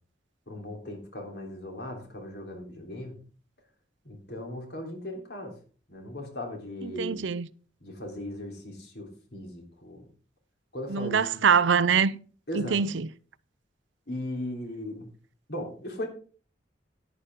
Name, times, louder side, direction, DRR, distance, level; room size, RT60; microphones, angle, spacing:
voice 1, 0.5-3.2 4.1-5.6 5.9-7.2 7.8-10.1 10.7-11.3 12.5-12.8 14.1-15.1 15.5-16.1, left 1 dB, 60° left, 3.4 m, -37 dB
voice 2, 6.8-7.5 10.9-12.2 12.5-13.1, right 6 dB, 80° right, 0.6 m, -24 dB
11.0 x 10.5 x 3.7 m
head